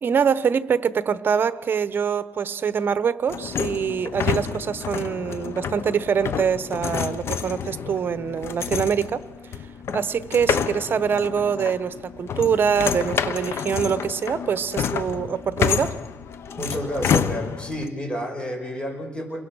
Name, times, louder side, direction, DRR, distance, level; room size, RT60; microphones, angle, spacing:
voice 1, 0.0-9.2 9.9-16.0, right 7 dB, 50° right, 15 dB, 1.0 m, -24 dB
sound 1, 3.3-17.9, left 7 dB, 65° left, 1.1 m, -29 dB
voice 2, 16.5-19.4, equal, 20° left, 3 dB, 6.0 m, -30 dB
28.5 x 23.0 x 6.4 m, 1.2 s
cardioid pair, 110°, 5 cm